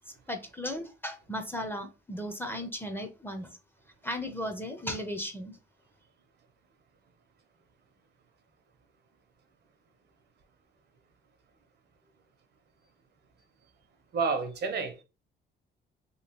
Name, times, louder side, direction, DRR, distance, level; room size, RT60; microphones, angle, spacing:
voice 1, 0.3-3.6 4.0-5.6, left 1 dB, 10° left, 0.6 m, -36 dB
voice 2, 14.1-15.0, right 4 dB, 55° right, 0.8 m, -30 dB
2.9 x 2.7 x 2.8 m
cardioid pair, 90°, 20 cm